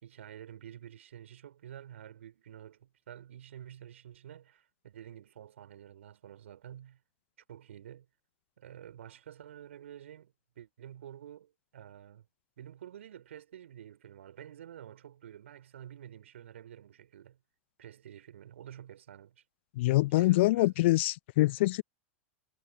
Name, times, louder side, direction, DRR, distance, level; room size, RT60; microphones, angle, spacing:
voice 1, 0.0-7.0 7.5-8.1 8.6-12.3 12.6-17.4 17.8-19.4 20.1-20.9, right 10 dB, 70° right, 4.6 m, -49 dB
voice 2, 19.8-21.8, left 18 dB, 55° left, 0.5 m, -25 dB
figure-of-eight pair, 95°, 7 cm